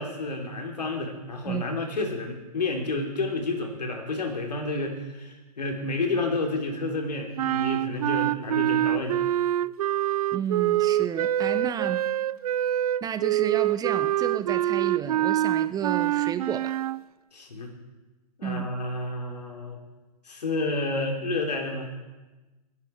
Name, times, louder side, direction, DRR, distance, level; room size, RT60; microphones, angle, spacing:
voice 1, 0.0-9.2 17.3-17.7 18.4-19.8 20.3-21.9, left 2 dB, 85° left, 2 dB, 3.3 m, -30 dB
sound 1, 7.4-17.0, right 13 dB, 65° right, 0.4 m, -25 dB
voice 2, 10.3-12.0 13.0-16.8 18.4-18.7, right 8 dB, 20° right, 11 dB, 0.7 m, -31 dB
25.5 x 10.5 x 4.6 m, 1.1 s
hypercardioid pair, 120°, 20 cm